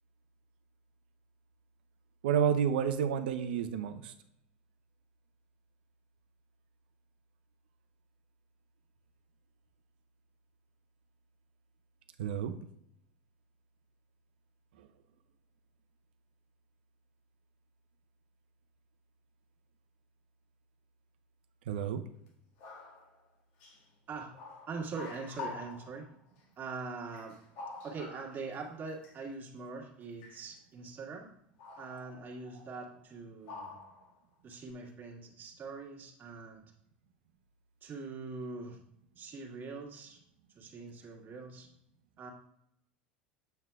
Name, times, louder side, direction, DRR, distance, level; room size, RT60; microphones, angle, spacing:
voice 1, 2.2-4.1 12.2-12.5 14.8-14.9 21.7-22.0, right 8 dB, 75° right, 9 dB, 0.7 m, -30 dB
sound 1, 22.3-22.4 22.6-23.2 23.6-23.8 24.3-26.1 26.4-26.5 27.1-28.6 28.9-29.2 30.2-30.5 31.6-33.0 33.5-34.2 34.5-34.7, left 4 dB, 60° left, 1.9 m, -47 dB
voice 2, 24.7-26.1 26.6-27.4 27.8-31.3 31.8-33.8 34.4-36.6 37.8-38.8 39.2-40.2 40.6-41.7 42.2-42.3, right 4 dB, 35° right, 0 dB, 1.8 m, -43 dB
8.0 x 7.3 x 2.4 m, 0.76 s
hypercardioid pair, 80°, 5 cm